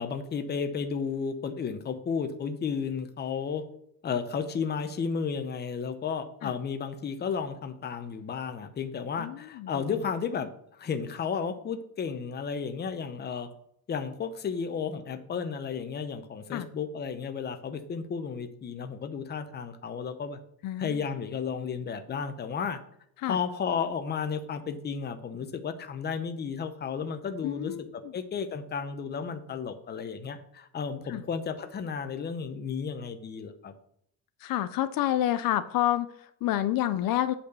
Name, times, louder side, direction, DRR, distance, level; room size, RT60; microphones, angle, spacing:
voice 1, 0.0-3.6 4.0-13.5 13.9-20.4 20.8-22.8 23.3-27.9 28.1-33.7, left 6 dB, 30° left, 9 dB, 0.7 m, -33 dB
voice 2, 9.2-9.9 16.5-16.7 20.6-21.0 23.2-23.4 27.4-28.1 31.1-31.2 34.4-37.3, left 13 dB, 65° left, 12 dB, 0.6 m, -29 dB
8.4 x 4.3 x 6.8 m, 0.69 s
cardioid pair, 170°, 36 cm